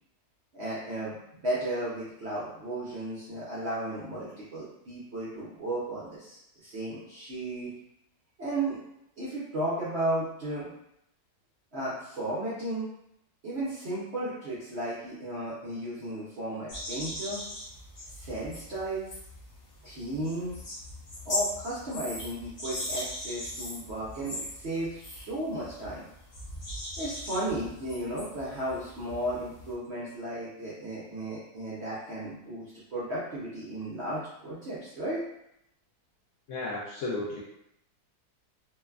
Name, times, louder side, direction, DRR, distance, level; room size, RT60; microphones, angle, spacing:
voice 1, 0.5-7.7 8.4-8.8 9.2-10.7 11.7-12.9 13.4-17.4 18.1-19.1 19.8-20.6 21.2-26.0 27.0-35.2, right 1 dB, 60° right, -9 dB, 0.7 m, -34 dB
sound 1, 16.7-29.7, left 1 dB, 55° left, 1.0 m, -39 dB
voice 2, 36.5-37.4, left 2 dB, 80° left, -5 dB, 0.6 m, -33 dB
3.0 x 2.1 x 2.3 m, 0.79 s
omnidirectional pair, 1.9 m